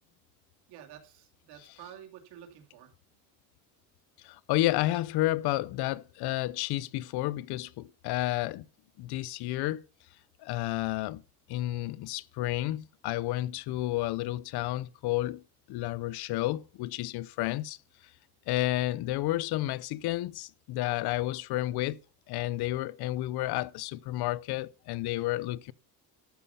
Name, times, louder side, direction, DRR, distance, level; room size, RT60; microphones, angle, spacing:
voice 1, 0.7-2.9, right 10 dB, 90° right, 2.6 m, -50 dB
voice 2, 4.2-8.6 9.0-9.8 10.4-11.2 11.5-15.4 15.7-17.8 18.5-22.0 22.3-25.7, left 16 dB, 80° left, 0.7 m, -31 dB
13.0 x 5.6 x 7.0 m
cardioid pair, 120°, 39 cm